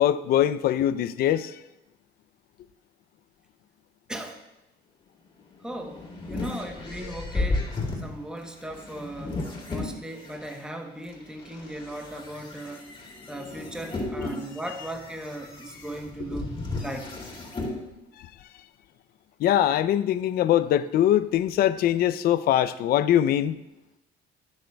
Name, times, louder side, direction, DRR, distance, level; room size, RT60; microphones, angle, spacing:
voice 1, 0.0-1.5 19.4-23.6, left 11 dB, 65° left, 0.5 m, -22 dB
sound 1, 5.5-10.5 11.1-17.8, left 2 dB, 30° left, 2.5 m, -34 dB
voice 2, 5.6-7.6 8.0-9.4 9.7-12.8 13.3-16.4 16.8-17.2, right 1 dB, 5° right, 1.0 m, -37 dB
18.0 x 6.5 x 2.3 m
cardioid pair, 110°, 17 cm